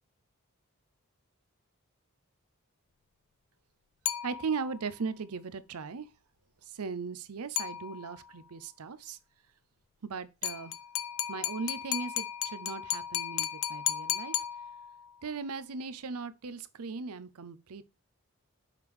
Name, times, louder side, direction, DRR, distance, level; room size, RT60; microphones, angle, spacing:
sound 1, 4.1-4.8 7.6-8.3 10.4-15.1, left 11 dB, 70° left, 0.5 m, -35 dB
voice 1, 4.2-6.1 6.7-9.2 10.0-10.7 11.3-14.3 15.2-17.8, right 5 dB, 85° right, 0.6 m, -38 dB
6.5 x 3.5 x 4.8 m
head